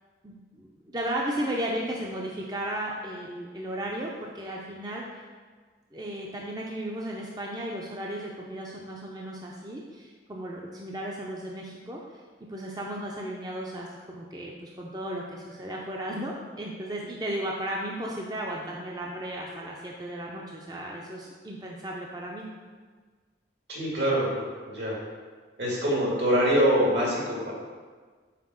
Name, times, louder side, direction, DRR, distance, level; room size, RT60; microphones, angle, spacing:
voice 1, 0.2-5.2 5.9-12.0 12.5-22.5, right 1 dB, 20° right, -2 dB, 0.6 m, -35 dB
voice 2, 23.7-25.0 25.6-27.5, equal, 75° right, -4 dB, 2.3 m, -24 dB
5.8 x 4.5 x 6.3 m, 1.5 s
head